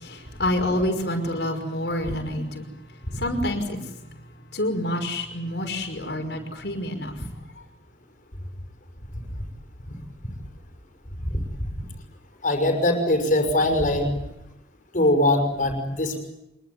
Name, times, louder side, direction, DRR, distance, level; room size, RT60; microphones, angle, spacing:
voice 1, 0.0-2.7 3.2-3.8 4.5-7.1, left 1 dB, 75° left, 4 dB, 5.6 m, -27 dB
voice 2, 12.4-14.1 14.9-16.2, left 1 dB, 50° left, 5 dB, 6.0 m, -21 dB
26.0 x 22.5 x 9.6 m, 0.89 s
head